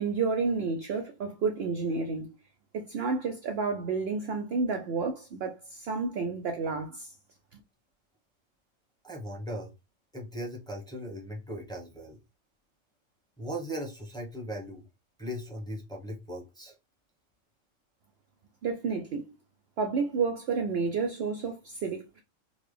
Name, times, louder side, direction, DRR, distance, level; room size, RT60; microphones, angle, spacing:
voice 1, 0.0-2.3 2.7-7.1 7.5-7.6 18.6-19.3 19.8-22.2, right 4 dB, 60° right, 0.7 m, -30 dB
voice 2, 9.0-9.7 10.1-12.2 13.4-14.8 15.2-16.7, equal, 5° left, 0.9 m, -38 dB
3.8 x 2.3 x 3.2 m
omnidirectional pair, 1.3 m